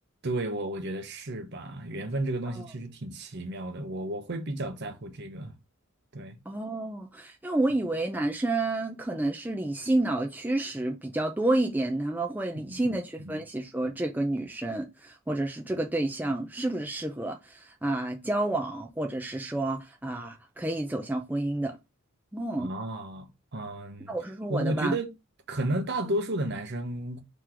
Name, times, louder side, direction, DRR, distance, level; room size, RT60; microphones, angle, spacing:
voice 1, 0.2-5.5 6.1-6.4 12.5-13.0 13.2-13.4 15.7-15.8 22.6-24.2 24.5-25.1 25.5-27.2, right 1 dB, 50° right, 0.8 m, -33 dB
voice 2, 6.5-21.8 22.3-22.7 24.1-24.9, right 2 dB, 10° right, 0.4 m, -30 dB
3.8 x 3.0 x 4.5 m
head